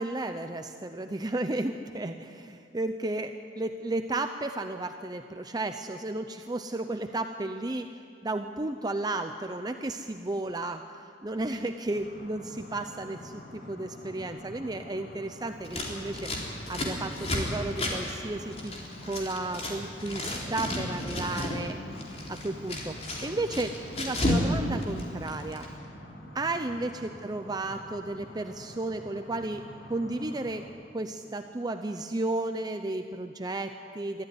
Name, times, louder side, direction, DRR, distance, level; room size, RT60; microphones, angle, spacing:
voice 1, 0.0-7.9 8.2-10.8 11.2-16.3 16.7-18.7 19.1-21.8 22.3-25.7 26.3-29.6 29.9-30.6 30.9-34.2, right 2 dB, 25° right, 7 dB, 0.6 m, -33 dB
sound 1, 11.9-30.7, left 1 dB, 65° left, 5.1 m, -47 dB
Scissors, 15.6-19.7 20.0-21.6 21.9-24.5 24.7-25.7, left 1 dB, 40° left, 3.7 m, -32 dB
22.5 x 14.0 x 9.7 m, 2.5 s
head